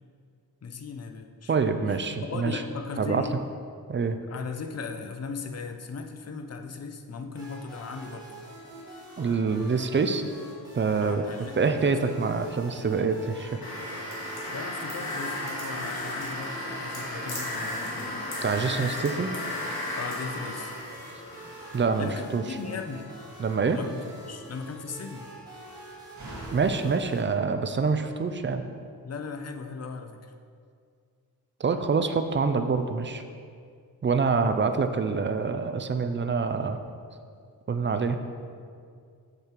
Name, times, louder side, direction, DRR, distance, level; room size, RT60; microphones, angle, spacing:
voice 1, 0.6-1.6 1.9-2.0 2.3-3.3 4.3-8.3 11.0-11.9 14.5-18.2 18.8-18.9 19.9-20.7 22.0-23.1 23.7-25.3 29.0-30.3, left 4 dB, 40° left, 5 dB, 0.6 m, -37 dB
voice 2, 1.5-2.6 3.0-3.2 3.9-4.2 9.2-10.3 10.7-11.3 11.6-14.2 18.4-19.3 21.7-22.4 23.4-23.8 26.5-28.7 31.6-33.2 34.0-36.8 37.7-38.2, right 5 dB, 30° right, 8 dB, 0.4 m, -26 dB
sound 1, 7.3-27.2, right 1 dB, 10° right, 1.9 m, -46 dB
sound 2, 13.6-21.8, left 1 dB, 75° left, 1.9 m, -34 dB
Slam, 21.0-28.3, right 1 dB, 50° right, 1.8 m, -50 dB
6.7 x 6.5 x 4.4 m, 2.2 s
wide cardioid pair, 130°, 38 cm